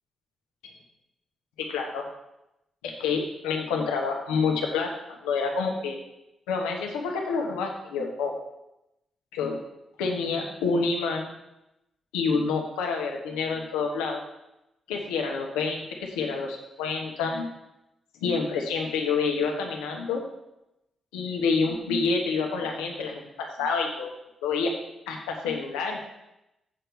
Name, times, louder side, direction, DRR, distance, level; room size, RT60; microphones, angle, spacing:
voice 1, 1.7-2.0 2.8-6.0 6.5-8.3 9.3-9.6 10.0-11.3 12.1-14.2 14.9-17.5 18.2-20.2 21.1-24.1 24.4-24.7 25.1-26.0, left 4 dB, 90° left, 1 dB, 1.3 m, -28 dB
7.4 x 4.5 x 6.9 m, 0.89 s
hypercardioid pair, 45°, 0 cm